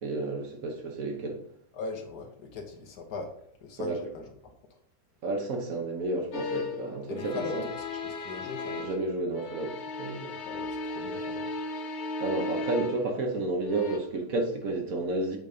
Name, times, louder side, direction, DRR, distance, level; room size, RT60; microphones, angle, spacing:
voice 1, 0.0-1.4 3.8-4.0 5.2-7.6 8.8-10.3 12.2-15.4, right 2 dB, 60° right, 1.5 m, -31 dB
voice 2, 1.7-4.8 7.1-8.9 10.3-11.6, left 3 dB, 70° left, 1.7 m, -40 dB
sound 1, 6.3-6.9 7.1-9.1 9.3-13.1 13.6-14.0, left 2 dB, 55° left, 0.9 m, -36 dB
8.0 x 4.1 x 5.0 m
omnidirectional pair, 1.8 m